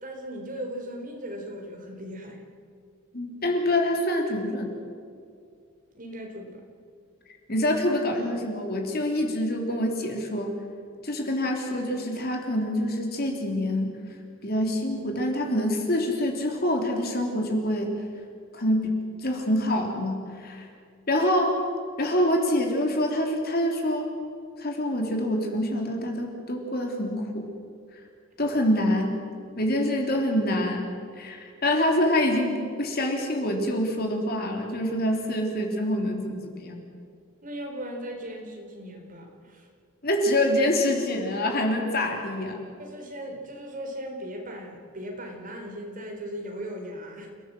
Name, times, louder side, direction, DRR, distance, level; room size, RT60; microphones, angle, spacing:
voice 1, 0.0-2.4 5.9-6.6 37.4-39.7 42.8-47.3, equal, 40° right, 1 dB, 4.2 m, -38 dB
voice 2, 3.1-4.7 7.5-10.5 11.0-14.0 14.4-18.0 18.5-20.7 21.1-21.6 22.0-24.1 24.6-27.5 28.4-29.2 29.6-30.9 31.1-36.8 40.0-42.6, left 1 dB, 45° left, 2 dB, 3.3 m, -26 dB
29.5 x 16.5 x 7.7 m, 2.3 s
head